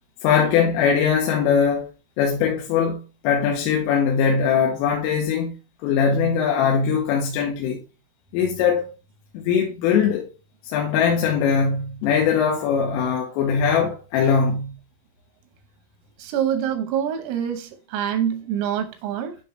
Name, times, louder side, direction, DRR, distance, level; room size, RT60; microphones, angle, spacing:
voice 1, 0.2-1.9 2.2-5.6 5.8-7.8 8.3-8.9 9.4-10.3 10.6-14.8, left 6 dB, 90° left, 3.5 m, -21 dB
voice 2, 16.2-19.4, right 9 dB, 90° right, 3.7 m, -25 dB
9.9 x 3.4 x 3.1 m
omnidirectional pair, 5.8 m